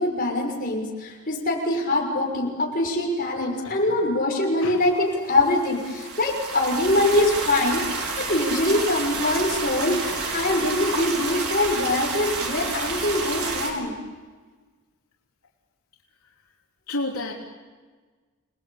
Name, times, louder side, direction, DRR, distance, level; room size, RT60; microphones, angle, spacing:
voice 1, 0.0-13.9, left 1 dB, 40° left, 0 dB, 6.1 m, -23 dB
sound 1, 5.3-13.7, right 3 dB, 90° right, 5.3 m, -30 dB
voice 2, 16.9-17.3, left 2 dB, 85° left, -1 dB, 3.4 m, -30 dB
29.0 x 20.5 x 8.7 m, 1.4 s
head